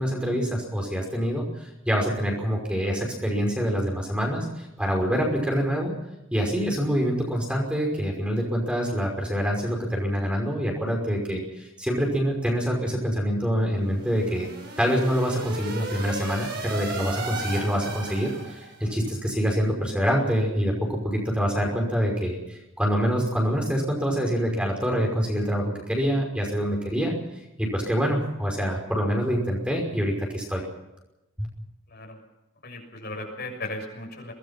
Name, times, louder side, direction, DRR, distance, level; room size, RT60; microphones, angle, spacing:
voice 1, 0.0-5.9 6.3-14.5 14.8-27.2 27.6-30.6 31.4-31.5, equal, 5° right, 0 dB, 5.6 m, -26 dB
sound 1, 13.8-18.8, right 3 dB, 50° right, 7.5 m, -35 dB
Laughter, 16.6-19.6 20.4-20.5 22.0-22.1, right 2 dB, 70° right, 6.5 m, -45 dB
voice 2, 32.6-34.3, left 2 dB, 50° left, 2 dB, 6.7 m, -36 dB
24.0 x 20.0 x 5.9 m, 0.95 s
head